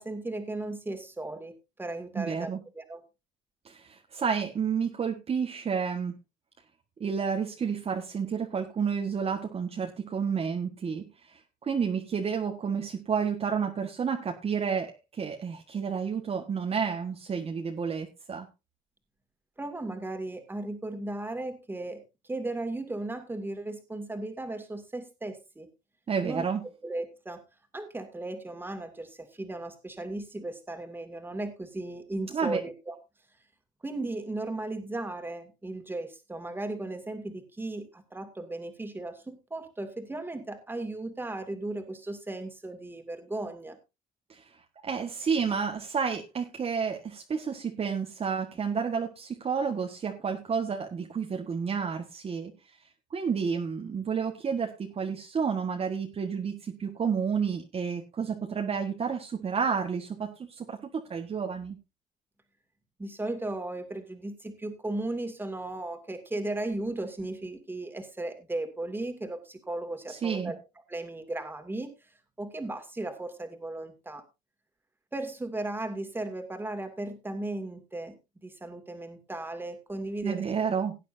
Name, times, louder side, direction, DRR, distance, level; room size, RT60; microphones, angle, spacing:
voice 1, 0.0-1.5 1.8-3.0 19.6-25.7 26.2-26.4 26.8-27.4 27.7-33.0 33.8-43.8 63.0-70.6 70.9-74.2 75.1-78.2 78.4-80.4, right 2 dB, 10° right, 7 dB, 2.3 m, -36 dB
voice 2, 2.2-2.6 3.6-6.1 7.0-18.5 26.1-26.6 32.3-32.6 44.3-44.5 44.8-52.5 53.1-61.8 70.1-70.5 80.2-81.0, right 6 dB, 35° right, 3 dB, 1.5 m, -30 dB
18.0 x 9.1 x 2.7 m, 0.25 s
cardioid pair, 110°, 17 cm